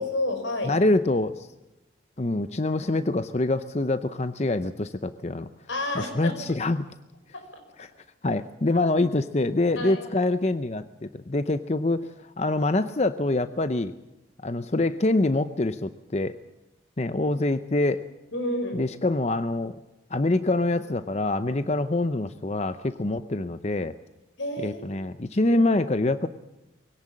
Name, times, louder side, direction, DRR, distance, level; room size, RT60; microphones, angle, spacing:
voice 1, 0.0-0.7 5.7-6.6 7.3-7.4 9.8-10.0 18.3-18.8 24.4-25.0 25.5-25.7, left 1 dB, 85° left, 5 dB, 5.5 m, -30 dB
voice 2, 0.6-1.5 2.2-5.5 5.9-6.9 7.8-7.9 8.2-13.9 14.4-16.4 17.0-18.0 18.7-19.7 20.1-23.9 24.6-26.3, left 2 dB, 35° left, 11 dB, 0.6 m, -25 dB
22.0 x 17.5 x 7.4 m, 0.99 s
head